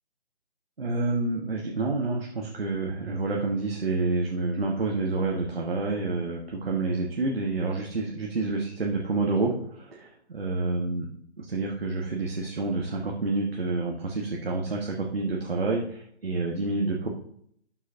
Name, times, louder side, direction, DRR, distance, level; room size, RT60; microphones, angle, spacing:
voice 1, 0.8-11.0 11.5-17.1, right 3 dB, 60° right, 0 dB, 1.3 m, -28 dB
11.5 x 6.3 x 2.8 m, 0.66 s
figure-of-eight pair, 155°, 34 cm